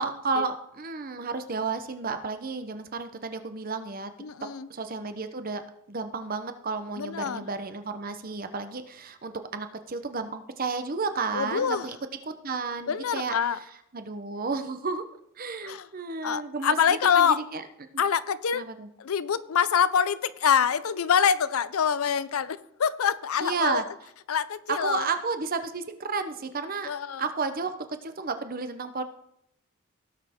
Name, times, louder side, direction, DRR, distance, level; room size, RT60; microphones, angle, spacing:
voice 1, 0.0-4.1 4.7-5.6 5.9-12.0 12.4-13.3 13.9-15.0 15.4-17.6 18.5-18.9 23.4-23.8 24.7-26.9 27.2-27.7 28.0-29.0, right 4 dB, 40° right, 9 dB, 0.8 m, -32 dB
voice 2, 4.2-4.7 7.0-7.5 11.3-11.9 12.9-13.6 15.6-15.9 16.2-17.4 18.0-18.7 19.0-23.8 24.3-25.1 26.9-27.2, left 7 dB, 75° left, 16 dB, 0.5 m, -25 dB
17.0 x 6.4 x 3.6 m, 0.76 s
head